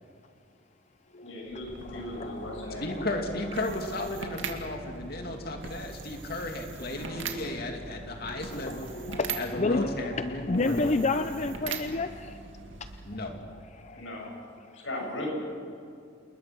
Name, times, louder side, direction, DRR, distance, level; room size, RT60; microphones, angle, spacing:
voice 1, 1.2-2.9 13.9-14.3 14.7-15.3, left 1 dB, 80° left, -1 dB, 7.3 m, -37 dB
sound 1, 1.5-13.4, right 4 dB, 75° right, 2.2 m, -41 dB
voice 2, 1.8-3.0 8.3-12.3 13.8-14.2, left 3 dB, 35° left, 9 dB, 0.6 m, -31 dB
voice 3, 2.8-8.9 9.3-10.9 13.0-13.3, left 1 dB, 55° left, 3 dB, 2.7 m, -34 dB
28.0 x 21.0 x 6.2 m, 2.4 s
head